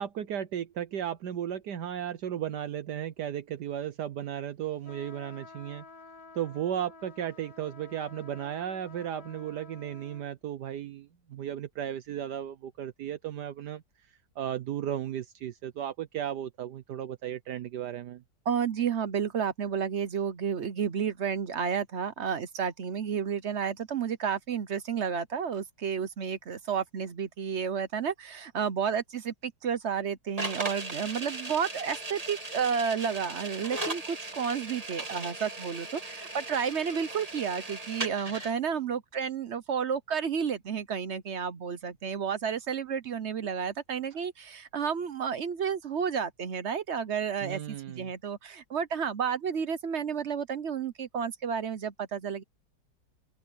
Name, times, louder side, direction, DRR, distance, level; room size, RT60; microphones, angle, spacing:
voice 1, 0.0-5.8 6.3-13.8 14.4-18.2 47.4-48.1, right 10 dB, 70° right, 1.4 m, -35 dB
sound 1, 4.8-10.3, left 3 dB, 60° left, 3.9 m, -51 dB
voice 2, 18.5-52.4, right 7 dB, 55° right, 0.8 m, -31 dB
sound 2, 30.4-38.5, right 2 dB, 20° right, 1.7 m, -38 dB
omnidirectional pair, 1.9 m